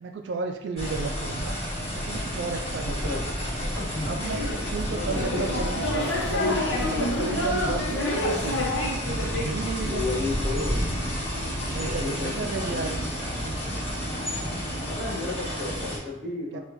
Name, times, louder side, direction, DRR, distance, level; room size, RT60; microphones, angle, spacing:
voice 1, 0.0-1.6 1.9-3.2 4.1-6.0 6.2-8.7 9.1-10.3 11.7-13.0 16.5-16.6, right 4 dB, 70° right, 5 dB, 0.3 m, -33 dB
sound 1, 0.8-16.0, equal, 30° left, 1.3 m, -30 dB
voice 2, 2.8-3.2 3.7-4.1 5.1-5.5 9.8-10.8 11.8-13.0 14.9-16.6, left 3 dB, 5° left, -9 dB, 1.6 m, -33 dB
sound 2, 4.2-9.5, left 1 dB, 90° left, 0.7 m, -28 dB
6.6 x 2.3 x 3.0 m, 0.90 s
head